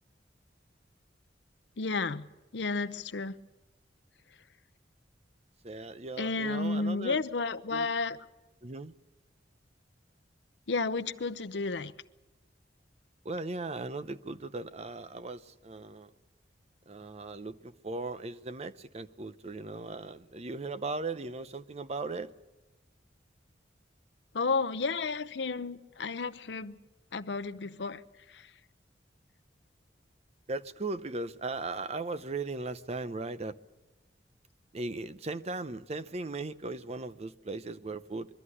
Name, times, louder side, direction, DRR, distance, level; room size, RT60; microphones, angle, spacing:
voice 1, 1.8-2.3 2.5-3.4 6.2-8.2 10.7-11.9 24.3-26.8 27.1-28.0 28.3-28.5, left 4 dB, 80° left, 13 dB, 0.7 m, -32 dB
voice 2, 5.6-7.2 7.7-7.9 8.6-8.9 13.2-16.1 16.9-22.3 30.5-33.5 34.7-38.3, right 3 dB, 35° right, 13 dB, 0.7 m, -38 dB
23.0 x 13.0 x 9.8 m, 1.1 s
head